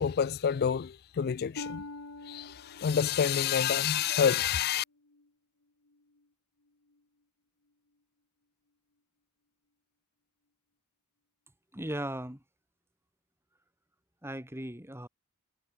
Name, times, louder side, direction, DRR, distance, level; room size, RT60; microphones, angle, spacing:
voice 1, 0.0-1.8 2.2-4.8, left 8 dB, 45° left, 0.4 m, -28 dB
Harp, 1.6-5.3 5.8-6.3 6.9-7.0, left 2 dB, 85° left, 2.1 m, -46 dB
voice 2, 11.7-12.4 14.2-15.1, right 1 dB, 10° right, 6.1 m, -37 dB
head